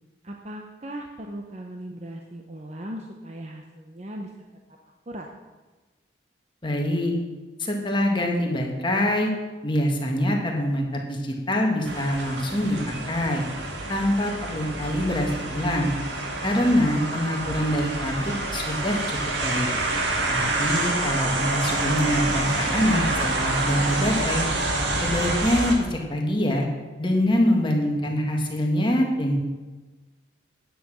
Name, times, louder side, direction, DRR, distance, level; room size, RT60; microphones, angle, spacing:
voice 1, 0.2-4.3 5.1-5.3 20.2-20.3 27.3-27.6, right 1 dB, 35° right, 2 dB, 0.8 m, -38 dB
voice 2, 6.6-7.1 7.6-9.3 9.6-13.4 13.9-15.9 16.4-19.7 20.3-24.4 25.0-26.7 27.0-29.4, left 1 dB, 25° left, 1 dB, 1.7 m, -24 dB
sound 1, 11.9-25.8, right 2 dB, 80° right, 1.8 m, -27 dB
10.0 x 8.9 x 6.2 m, 1.3 s
head